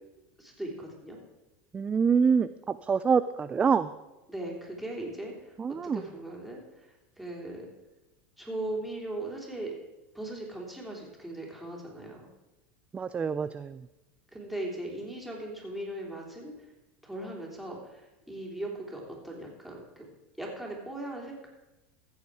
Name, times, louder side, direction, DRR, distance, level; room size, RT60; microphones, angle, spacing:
voice 1, 0.4-1.2 4.3-5.5 5.8-7.7 8.4-9.7 10.1-12.3 14.3-16.7 17.0-20.0 20.4-21.5, right 1 dB, ahead, -3 dB, 3.3 m, -39 dB
voice 2, 1.7-3.9 5.6-6.0 12.9-13.9, right 6 dB, 20° right, 13 dB, 0.3 m, -26 dB
15.0 x 7.1 x 4.8 m, 1.0 s
supercardioid pair, 115°, 7 cm